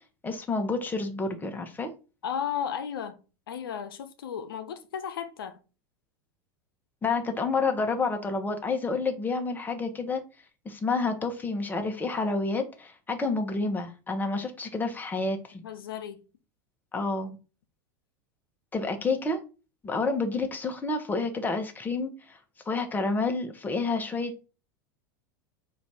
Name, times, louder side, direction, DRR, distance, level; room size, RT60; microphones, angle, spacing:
voice 1, 0.2-1.9 7.0-10.2 10.6-15.6 16.9-17.4 18.7-19.4 19.8-22.4 22.7-24.4, left 3 dB, 15° left, 1.0 m, -29 dB
voice 2, 2.2-5.6 15.6-16.2, left 8 dB, 85° left, 0.6 m, -34 dB
4.0 x 2.6 x 4.7 m
hypercardioid pair, 100°, 12 cm